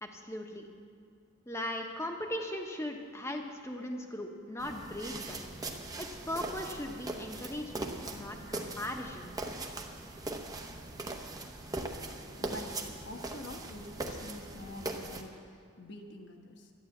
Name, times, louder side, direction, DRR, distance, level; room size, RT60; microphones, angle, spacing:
voice 1, 0.0-0.7 1.5-5.4 6.0-9.3, left 1 dB, 15° left, 3 dB, 1.0 m, -38 dB
sound 1, 4.6-15.2, right 2 dB, 15° right, 0.9 m, -40 dB
voice 2, 12.4-16.7, left 1 dB, 55° left, 4 dB, 1.3 m, -46 dB
11.5 x 10.5 x 7.9 m, 2.2 s
head